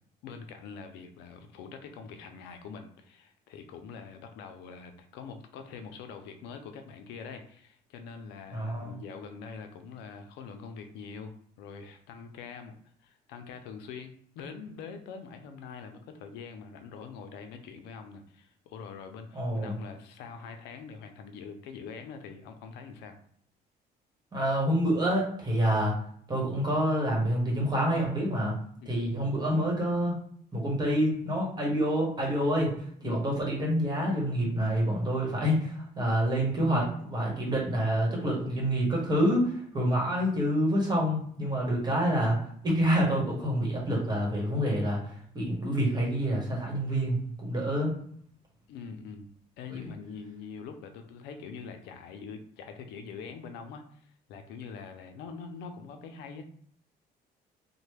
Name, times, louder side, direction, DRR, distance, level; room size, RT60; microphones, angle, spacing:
voice 1, 0.2-12.8 13.0-23.2 28.8-29.0 33.0-33.2 48.7-49.3 49.6-56.4, left 5 dB, 90° left, 6 dB, 0.5 m, -44 dB
voice 2, 8.5-8.9 19.3-19.8 24.3-25.9 26.3-28.6 28.9-30.2 30.5-42.4 42.6-47.9 49.7-49.9, equal, 25° right, -2 dB, 1.4 m, -27 dB
3.0 x 2.1 x 3.3 m, 0.63 s
cardioid pair, 110°, 17 cm